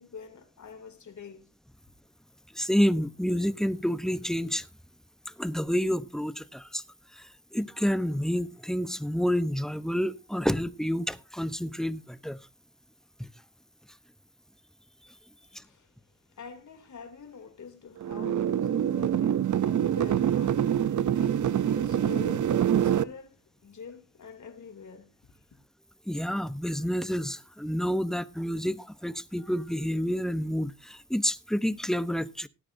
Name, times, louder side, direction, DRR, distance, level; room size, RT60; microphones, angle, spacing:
voice 1, 0.0-1.5 15.5-25.6, left 6 dB, 65° left, 3.0 m, -46 dB
voice 2, 2.5-4.7 5.4-6.8 7.2-7.3 7.5-12.4 26.1-32.5, equal, ahead, 0.9 m, -29 dB
sound 1, 18.0-23.0, right 10 dB, 65° right, 0.7 m, -25 dB
18.0 x 9.8 x 2.7 m
cardioid pair, 75°, 32 cm